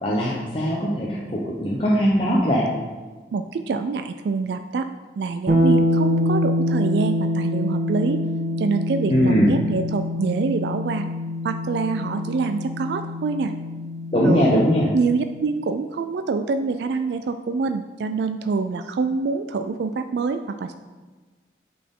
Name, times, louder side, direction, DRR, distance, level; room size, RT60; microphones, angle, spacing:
voice 1, 0.0-2.7 9.1-9.5 14.1-14.9, equal, 30° left, -4 dB, 0.7 m, -20 dB
voice 2, 3.3-4.9 5.2-8.2 8.6-11.0 11.4-13.5 14.2-14.6 14.9-20.7, right 4 dB, 70° right, 8 dB, 0.3 m, -25 dB
sound 1, 5.5-15.2, left 1 dB, 45° right, 1.1 m, -25 dB
8.3 x 4.2 x 3.7 m, 1.3 s
head